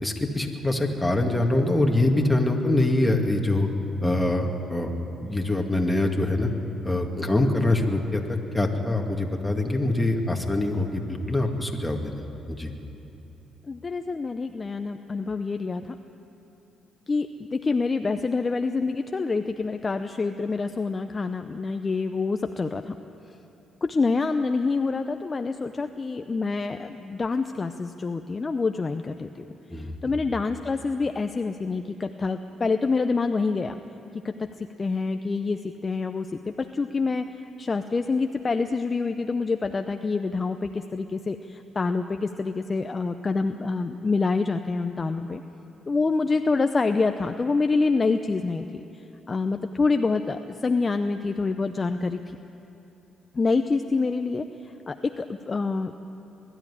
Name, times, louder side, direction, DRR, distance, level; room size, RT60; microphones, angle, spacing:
voice 1, 0.0-3.7 4.0-4.9 5.2-6.5 6.8-12.7 29.7-30.1, left 2 dB, 10° left, 2 dB, 2.2 m, -24 dB
voice 2, 13.7-15.9 17.1-22.9 23.8-29.4 30.0-33.8 34.2-36.3 36.6-37.3 37.6-45.4 45.9-48.6 49.3-52.2 53.3-54.5 54.9-55.9, left 4 dB, 30° left, 7 dB, 0.6 m, -26 dB
21.5 x 13.0 x 10.0 m, 2.9 s
cardioid pair, 90°, 0 cm